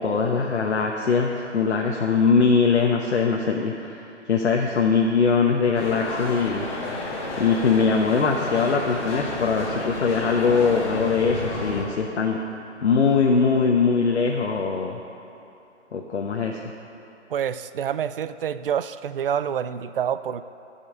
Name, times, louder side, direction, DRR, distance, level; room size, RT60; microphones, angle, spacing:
voice 1, 0.0-6.7 7.4-12.4 12.8-15.0 15.9-16.6, left 5 dB, 65° left, 0 dB, 1.0 m, -22 dB
sound 1, 5.7-11.8, left 2 dB, 25° left, 1.4 m, -31 dB
voice 2, 17.3-20.4, right 8 dB, 50° right, 13 dB, 0.4 m, -27 dB
16.0 x 5.7 x 5.3 m, 3.0 s
hypercardioid pair, 155°, 36 cm